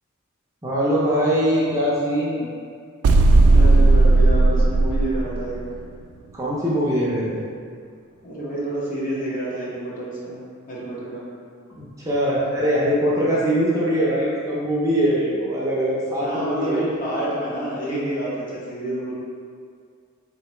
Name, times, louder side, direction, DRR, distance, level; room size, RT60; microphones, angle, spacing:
voice 1, 0.6-2.5 6.3-7.4 11.7-16.8, equal, 15° right, -7 dB, 0.6 m, -22 dB
sound 1, 3.0-5.8, right 2 dB, 85° right, 0.3 m, -15 dB
voice 2, 3.5-5.6 8.2-10.4 10.7-11.2 16.2-19.1, right 1 dB, 40° left, -7 dB, 1.0 m, -28 dB
4.0 x 3.3 x 3.0 m, 2.2 s
head